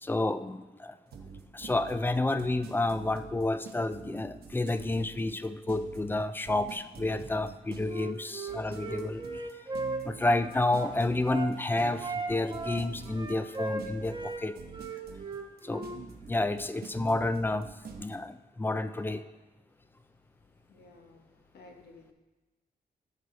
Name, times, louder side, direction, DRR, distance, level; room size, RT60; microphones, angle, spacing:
voice 1, 0.0-1.0 1.5-9.4 10.0-14.5 15.6-15.9 16.3-17.7 18.0-19.2, left 2 dB, 15° left, 12 dB, 0.3 m, -30 dB
sound 1, 1.1-18.2, right 5 dB, 75° right, 1.1 m, -46 dB
Wind instrument woodwind instrument, 7.8-11.5 12.0-14.4 14.7-16.0, right 3 dB, 30° right, 1.1 m, -37 dB
voice 2, 20.7-22.1, left 3 dB, 75° left, 2 dB, 1.5 m, -54 dB
13.0 x 6.2 x 4.0 m, 1.2 s
wide cardioid pair, 145°, 16 cm